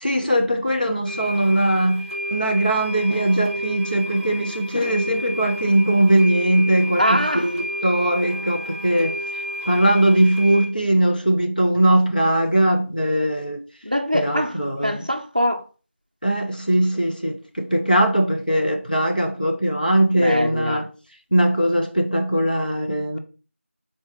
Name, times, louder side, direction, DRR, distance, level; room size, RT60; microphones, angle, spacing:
voice 1, 0.0-9.2 9.7-13.6 14.1-15.1 16.2-20.9 21.3-23.2, right 1 dB, 40° left, 0.7 m, -20 dB
sound 1, 1.1-10.7, equal, 20° left, 1.3 m, -31 dB
voice 2, 7.0-7.5 13.8-14.6 14.8-15.6 20.2-20.8, equal, 40° right, 0.5 m, -22 dB
3.9 x 3.8 x 3.0 m
figure-of-eight pair, 180°, 7 cm